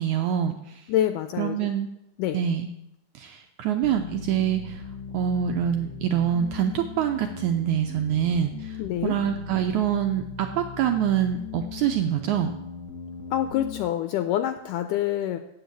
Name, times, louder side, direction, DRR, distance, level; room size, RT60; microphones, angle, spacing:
voice 1, 0.0-0.8 1.4-1.9 2.3-2.7 3.2-4.8 5.1-8.8 9.0-12.6, right 9 dB, 85° right, 5 dB, 1.7 m, -25 dB
voice 2, 0.9-1.7 2.2-2.4 8.8-9.1 13.3-15.4, left 12 dB, 85° left, 9 dB, 1.9 m, -26 dB
sound 1, 3.8-13.8, left 5 dB, 50° left, 1.5 m, -39 dB
9.1 x 7.8 x 8.2 m, 0.85 s
omnidirectional pair, 4.2 m